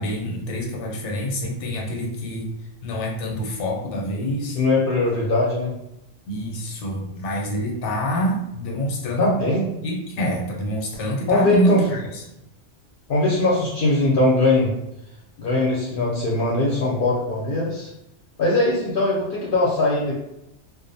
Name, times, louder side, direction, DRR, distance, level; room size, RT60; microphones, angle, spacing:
voice 1, 0.0-2.5 2.8-4.6 6.3-9.3 9.8-12.2, equal, 85° left, 0 dB, 0.9 m, -26 dB
voice 2, 4.5-5.7 9.2-9.6 11.3-11.8 13.1-14.7 15.4-17.9 18.4-20.2, left 2 dB, 60° left, -5 dB, 0.6 m, -20 dB
2.4 x 2.0 x 2.6 m, 0.87 s
omnidirectional pair, 1.2 m